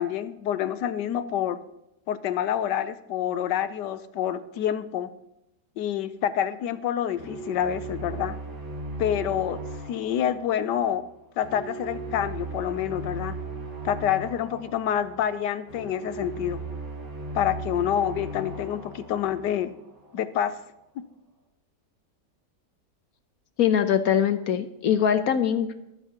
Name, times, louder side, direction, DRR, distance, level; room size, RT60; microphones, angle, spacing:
voice 1, 0.0-1.6 2.1-5.1 5.8-8.4 9.0-11.1 11.4-13.4 13.8-16.6 17.3-19.7 20.1-20.6 21.0-21.1, left 10 dB, 90° left, 13 dB, 1.3 m, -27 dB
sound 1, 7.1-20.2, right 3 dB, 80° right, 2.6 m, -37 dB
voice 2, 23.6-25.8, left 9 dB, 65° left, 10 dB, 1.1 m, -22 dB
23.0 x 8.3 x 2.9 m, 0.86 s
omnidirectional pair, 1.8 m